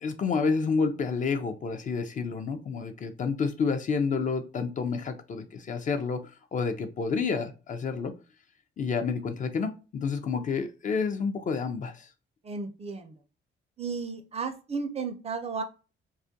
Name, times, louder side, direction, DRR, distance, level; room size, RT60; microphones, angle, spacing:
voice 1, 0.0-8.2 8.8-12.1, left 5 dB, 40° left, 8 dB, 0.4 m, -29 dB
voice 2, 12.4-13.1 13.8-15.6, right 4 dB, 30° right, 6 dB, 0.5 m, -34 dB
2.3 x 2.1 x 2.6 m, 0.32 s
cardioid pair, 90°, 20 cm